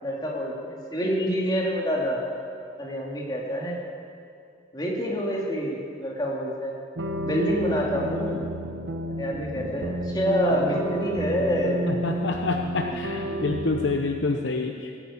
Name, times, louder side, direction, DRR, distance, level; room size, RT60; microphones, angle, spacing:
voice 1, 0.0-2.2 2.8-3.8 4.7-6.7 7.2-8.4 9.1-11.8 12.9-13.4, equal, 20° left, -2 dB, 2.4 m, -27 dB
sound 1, 7.0-14.0, right 1 dB, 75° right, 1.2 m, -31 dB
voice 2, 11.9-15.0, left 3 dB, 75° left, 3 dB, 0.9 m, -27 dB
17.0 x 10.0 x 8.5 m, 2.4 s
head